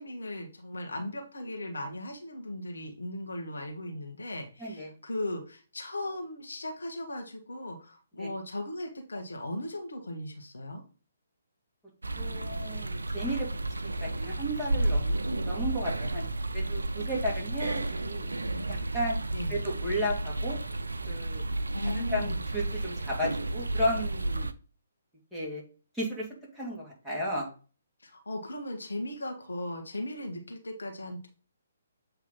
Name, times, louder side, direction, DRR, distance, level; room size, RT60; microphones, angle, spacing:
voice 1, 0.0-10.8 15.2-15.5 19.3-19.7 21.7-22.4 28.0-31.3, left 1 dB, 70° left, 2 dB, 1.4 m, -37 dB
voice 2, 4.6-4.9 8.2-8.3 12.2-13.5 13.8-16.2 16.5-18.3 18.7-19.2 19.5-20.6 21.1-21.4 21.8-24.5 25.3-25.6 25.9-26.3 26.5-27.5, equal, ahead, -8 dB, 2.3 m, -34 dB
sound 1, 12.0-24.5, right 2 dB, 75° right, 0.5 m, -32 dB
8.0 x 3.3 x 3.8 m, 0.36 s
figure-of-eight pair, 135°, 0 cm